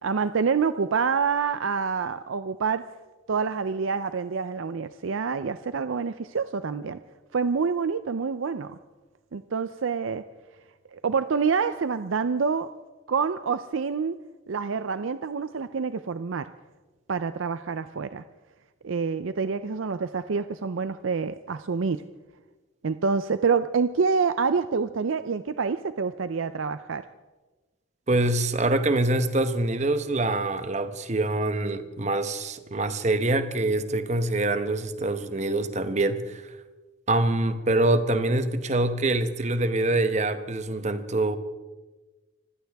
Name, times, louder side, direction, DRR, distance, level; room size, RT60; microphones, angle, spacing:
voice 1, 0.0-2.8 3.3-7.0 7.3-8.8 9.3-10.2 10.9-12.7 13.1-14.2 14.5-16.5 17.1-18.2 18.8-22.0 22.8-27.0, right 5 dB, 80° right, 0.5 m, -27 dB
voice 2, 28.1-36.4 37.1-41.4, right 2 dB, 35° right, 0.9 m, -25 dB
25.0 x 16.0 x 3.5 m
head